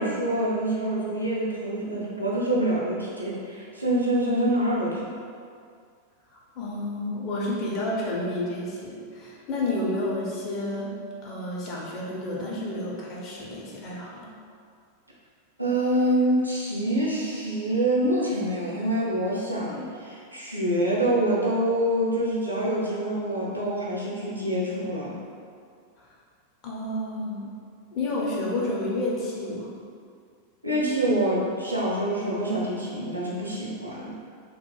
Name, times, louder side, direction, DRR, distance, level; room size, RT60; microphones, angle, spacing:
voice 1, 0.0-5.1 15.6-25.2 30.6-34.1, right 1 dB, 85° right, -5 dB, 0.5 m, -26 dB
voice 2, 6.6-10.9 11.2-14.3 26.6-27.5 27.9-29.8, left 1 dB, 40° left, -4 dB, 0.6 m, -30 dB
2.9 x 2.4 x 2.2 m, 2.2 s
figure-of-eight pair, 90°, 0 cm